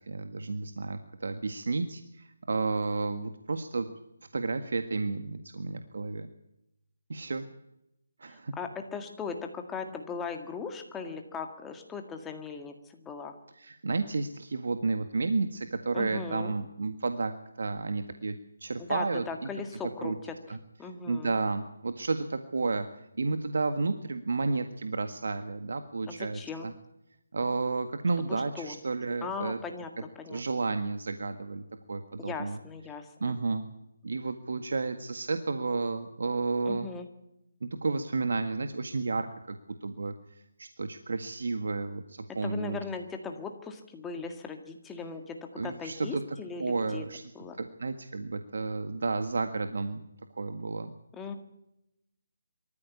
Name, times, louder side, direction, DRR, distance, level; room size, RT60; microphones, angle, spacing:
voice 1, 0.1-3.9 4.3-6.3 7.1-7.5 8.2-8.5 13.6-17.3 17.6-18.3 18.6-19.2 20.0-20.2 20.5-20.6 21.1-22.9 23.2-26.7 27.3-29.6 30.3-31.6 31.9-32.6 33.2-33.6 34.0-36.9 37.6-40.1 40.6-42.8 45.6-46.2 46.6-47.2 47.6-50.0 50.4-50.9, right 3 dB, 70° right, 8 dB, 1.7 m, -31 dB
voice 2, 8.3-13.4 15.9-16.5 18.8-20.3 20.8-21.4 26.1-26.7 28.2-28.8 29.2-30.4 32.2-33.4 36.7-37.1 42.4-47.0 47.4-47.6 51.1-51.4, left 5 dB, 10° left, 5 dB, 1.8 m, -39 dB
24.5 x 14.0 x 8.4 m, 0.87 s
hypercardioid pair, 165°, 0 cm